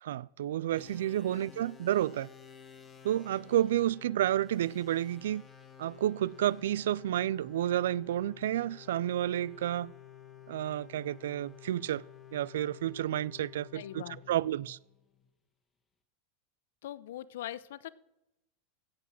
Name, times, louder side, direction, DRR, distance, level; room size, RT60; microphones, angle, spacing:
voice 1, 0.0-2.3 3.0-5.4 5.8-9.9 10.5-12.0 12.3-14.8, right 12 dB, 90° right, 0.3 m, -30 dB
sound 1, 0.7-15.3, left 9 dB, 15° left, 1.4 m, -52 dB
voice 2, 13.7-14.2 16.8-17.9, left 12 dB, 80° left, 0.7 m, -42 dB
16.0 x 6.1 x 7.4 m
supercardioid pair, 150°, 0 cm